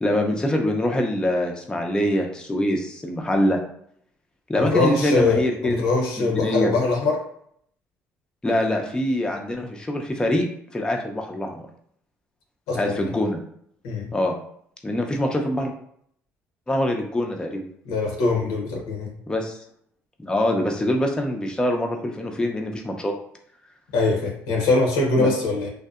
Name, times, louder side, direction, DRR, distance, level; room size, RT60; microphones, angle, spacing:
voice 1, 0.0-3.6 4.5-5.8 6.2-6.7 8.4-10.5 10.7-11.7 12.7-13.4 14.1-14.3 14.8-15.7 16.7-17.6 19.3-19.6 20.2-23.1 25.2-25.3, left 1 dB, 15° left, 2 dB, 0.5 m, -24 dB
voice 2, 4.6-7.3 12.7-13.0 13.8-14.1 17.9-19.1 23.9-25.7, left 3 dB, 90° left, 0 dB, 0.7 m, -22 dB
2.6 x 2.1 x 2.3 m, 0.67 s
supercardioid pair, 75°, 6 cm